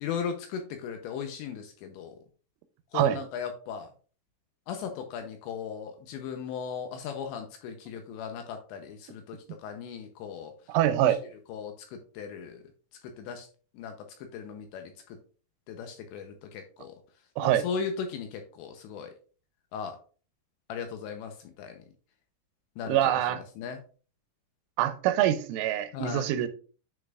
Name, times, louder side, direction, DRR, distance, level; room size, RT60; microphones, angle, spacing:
voice 1, 0.0-2.2 2.9-3.9 4.7-10.5 11.0-11.1 11.5-12.6 13.0-13.5 13.8-13.9 14.3-14.9 15.7-16.9 17.4-19.1 19.7-20.0 20.7-21.3 21.6-21.8 22.8-23.0 23.6-23.8 25.9-26.2, left 6 dB, 80° left, 2.8 m, -37 dB
voice 2, 10.7-11.2 17.4-17.6 22.8-23.4 24.8-26.5, right 12 dB, 85° right, 3.1 m, -25 dB
9.5 x 5.4 x 2.4 m
omnidirectional pair, 5.7 m